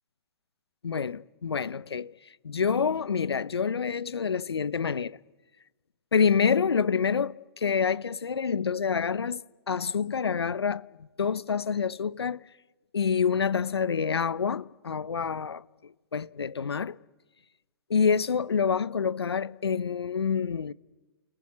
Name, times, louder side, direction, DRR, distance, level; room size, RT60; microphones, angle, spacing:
voice 1, 0.8-2.1 2.4-5.2 6.1-12.4 12.9-17.0 17.9-20.7, left 6 dB, 80° left, 0.8 m, -27 dB
30.0 x 20.0 x 9.5 m
hypercardioid pair, 130°, 13 cm